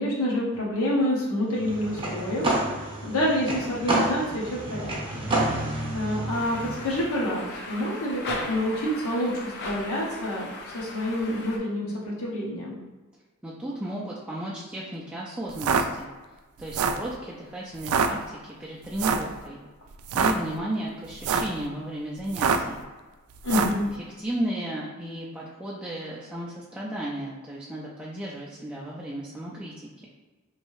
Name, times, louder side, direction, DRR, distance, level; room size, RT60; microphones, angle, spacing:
voice 1, 0.0-4.9 5.1-5.3 5.9-12.8 23.4-23.9, left 1 dB, 75° left, -5 dB, 0.9 m, -28 dB
sound 1, 1.5-7.0, right 1 dB, 25° right, 0.7 m, -29 dB
sound 2, 6.3-11.6, left 2 dB, 50° left, 0.5 m, -38 dB
voice 2, 13.4-16.1 16.6-19.6 20.1-22.8 24.2-30.1, right 1 dB, 5° right, -6 dB, 0.3 m, -34 dB
sound 3, 15.5-15.8 16.6-17.1 17.8-18.1 19.0-19.3 20.0-20.3 21.1-21.6 22.3-22.7 23.4-23.8, right 6 dB, 85° right, 0.3 m, -24 dB
3.1 x 2.7 x 3.0 m, 1.3 s
head